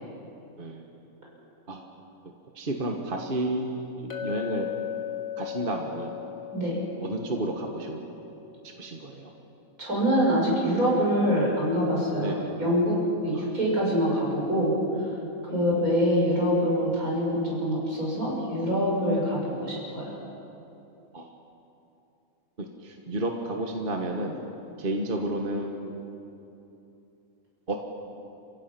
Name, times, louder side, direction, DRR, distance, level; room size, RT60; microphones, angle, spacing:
voice 1, 0.6-0.9 1.7-1.9 2.5-4.7 5.4-6.2 7.0-8.1 8.6-9.3 12.2-12.6 13.3-13.5 15.5-15.9 21.1-21.3 22.6-24.4 24.8-26.0 27.7-27.8, right 1 dB, 40° right, 2 dB, 1.5 m, -32 dB
Chink clink, 4.1-8.5, left 11 dB, 55° left, 2.1 m, -37 dB
voice 2, 9.8-14.7 15.4-20.1, equal, 75° right, -4 dB, 6.5 m, -25 dB
29.5 x 16.0 x 5.9 m, 2.9 s
omnidirectional pair, 1.5 m